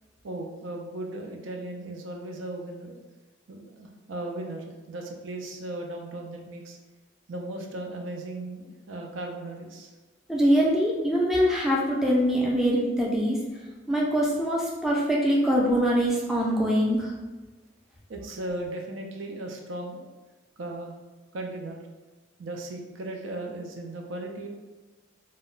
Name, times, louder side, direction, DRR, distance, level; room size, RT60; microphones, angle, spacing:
voice 1, 0.2-3.0 3.5-6.8 7.3-9.9 18.1-20.1 20.6-20.9 21.3-21.8 22.4-24.5, right 2 dB, 85° right, 2 dB, 0.5 m, -36 dB
voice 2, 10.3-13.4 13.9-17.1, equal, ahead, -4 dB, 0.4 m, -23 dB
2.1 x 2.1 x 3.8 m, 1.2 s
head